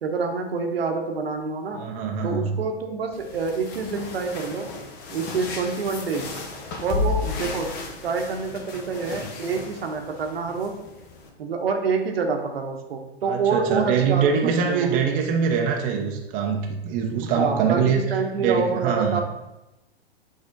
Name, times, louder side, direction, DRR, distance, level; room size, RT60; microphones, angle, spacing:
voice 1, 0.0-1.8 2.2-4.7 5.1-6.3 6.8-7.8 8.0-10.8 11.4-14.9 17.2-19.2, right 4 dB, 65° right, 4 dB, 1.0 m, -27 dB
voice 2, 1.7-2.6 13.2-18.1 18.4-19.2, right 6 dB, 25° right, 1 dB, 0.7 m, -23 dB
sound 1, 3.1-11.3, left 4 dB, 30° left, 1.0 m, -33 dB
8.0 x 3.5 x 3.8 m, 0.96 s
figure-of-eight pair, 105°, 33 cm